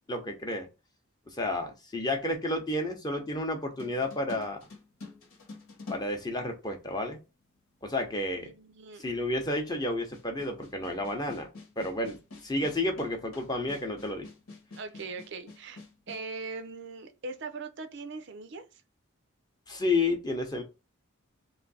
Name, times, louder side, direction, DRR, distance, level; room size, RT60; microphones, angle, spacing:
voice 1, 0.1-0.7 1.3-4.6 5.9-7.2 7.8-8.5 9.0-11.5 11.8-12.2 12.4-14.3 19.7-20.6, left 2 dB, 20° left, 0.7 m, -31 dB
sound 1, 3.8-7.0 7.9-8.0 10.1-16.3, left 3 dB, 85° left, 1.3 m, -47 dB
voice 2, 8.4-9.0 14.8-15.8 16.1-18.8, right 3 dB, 55° right, 0.4 m, -40 dB
3.1 x 2.6 x 4.0 m
head